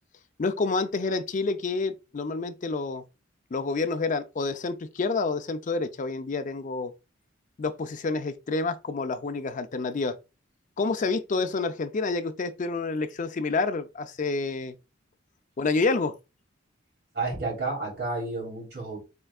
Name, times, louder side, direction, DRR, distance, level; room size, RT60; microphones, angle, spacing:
voice 1, 0.4-3.0 3.5-6.9 7.6-10.2 10.8-14.7 15.6-16.1, left 3 dB, 40° left, 0.4 m, -28 dB
voice 2, 17.1-19.0, right 3 dB, 55° right, 2.5 m, -31 dB
4.4 x 3.3 x 2.3 m
head